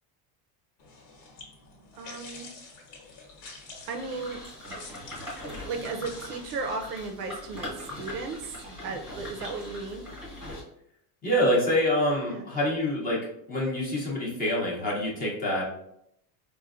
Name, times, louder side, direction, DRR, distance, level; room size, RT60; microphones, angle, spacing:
sound 1, 0.8-7.0, left 3 dB, 80° left, 1.2 m, -48 dB
voice 1, 1.9-2.5 3.9-4.4 4.7-4.9 5.7-8.6 8.8-10.1 12.3-12.5, right 4 dB, 55° right, 4 dB, 0.5 m, -35 dB
sound 2, 3.8-10.6, left 1 dB, ahead, 1.1 m, -41 dB
voice 2, 11.2-13.2 13.5-15.6, left 1 dB, 20° left, -4 dB, 0.7 m, -26 dB
4.3 x 2.2 x 2.4 m, 0.73 s
cardioid pair, 165°, 47 cm